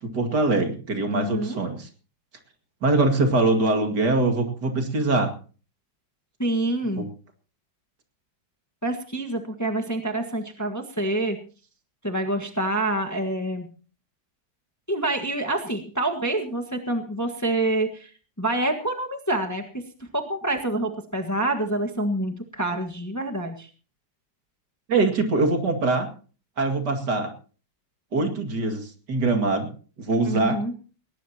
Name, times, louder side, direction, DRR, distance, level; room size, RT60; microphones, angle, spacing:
voice 1, 0.0-1.9 2.8-5.3 7.0-7.1 24.9-26.1 26.6-27.3 28.1-29.7 30.0-30.6, right 2 dB, 60° right, 5 dB, 2.8 m, -23 dB
voice 2, 1.1-1.6 6.4-7.0 8.8-11.4 12.0-13.7 14.9-18.1 18.4-19.6 20.1-23.7 30.2-30.7, right 1 dB, 10° left, 4 dB, 1.4 m, -27 dB
19.0 x 18.5 x 2.9 m, 0.38 s
omnidirectional pair, 2.0 m